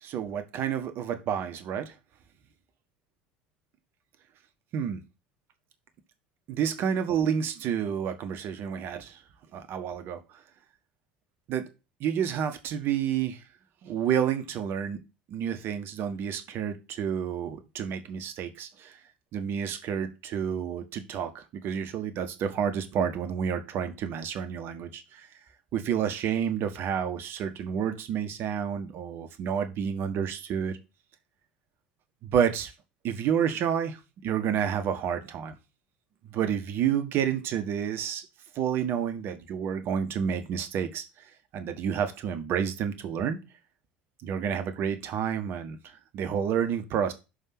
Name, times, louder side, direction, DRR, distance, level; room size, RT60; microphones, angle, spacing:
voice 1, 0.0-1.9 4.7-5.0 6.5-9.2 9.5-10.2 11.5-11.7 12.0-13.4 13.8-15.0 15.3-19.0 19.3-25.3 25.7-30.8 32.2-32.7 33.0-35.6 36.3-38.2 38.5-41.0 41.5-43.4 44.2-47.1, right 8 dB, 45° right, 1.4 m, -29 dB
6.3 x 5.6 x 6.0 m
figure-of-eight pair, 65°, 5 cm